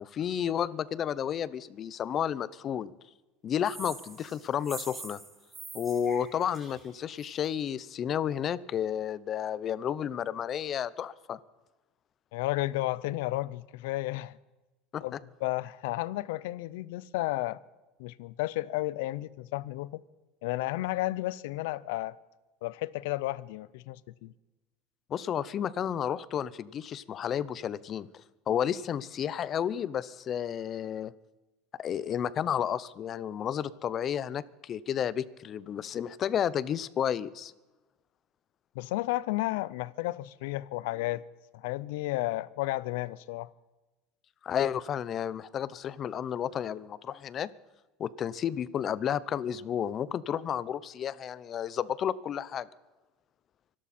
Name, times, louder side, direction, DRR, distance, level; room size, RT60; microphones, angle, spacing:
voice 1, 0.0-2.9 3.4-5.2 5.7-11.4 14.9-15.2 25.1-31.1 31.8-37.5 44.4-47.5 48.0-52.7, left 9 dB, 35° left, 0.7 m, -32 dB
sound 1, 3.6-7.5, right 3 dB, 20° right, 3.6 m, -45 dB
voice 2, 12.3-14.3 15.0-15.2 15.4-17.6 18.0-20.0 20.4-22.2 22.6-24.3 38.8-41.2 41.5-43.5, left 18 dB, 80° left, 0.6 m, -32 dB
25.0 x 12.5 x 4.3 m
supercardioid pair, 125°, 0 cm